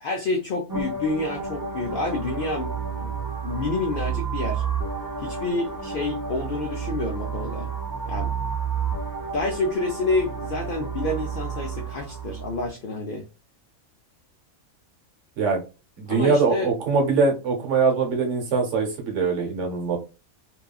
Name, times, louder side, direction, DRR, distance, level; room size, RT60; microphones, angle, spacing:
voice 1, 0.0-2.7 3.0-3.1 3.4-4.6 5.2-7.7 8.1-8.3 9.3-13.3 16.1-16.7, left 2 dB, 75° left, 2 dB, 0.4 m, -28 dB
sound 1, 0.7-12.7, right 6 dB, 30° right, 0.4 m, -31 dB
voice 2, 16.0-20.0, right 4 dB, 60° right, 1 dB, 1.1 m, -22 dB
2.9 x 2.3 x 2.2 m, 0.31 s
omnidirectional pair, 1.5 m